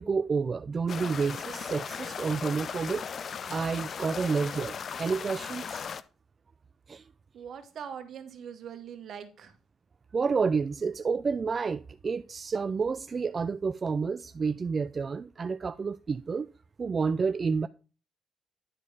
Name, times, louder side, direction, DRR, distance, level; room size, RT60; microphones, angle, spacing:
voice 1, 0.0-3.0 3.5-5.8 6.9-7.0 10.1-16.5 16.8-17.7, right 5 dB, 40° right, 0.3 m, -29 dB
sound 1, 0.9-6.0, left 6 dB, 50° left, 0.5 m, -37 dB
voice 2, 7.3-9.5, right 8 dB, 65° right, 1.4 m, -42 dB
10.5 x 4.4 x 4.8 m
cardioid pair, 90°, 0 cm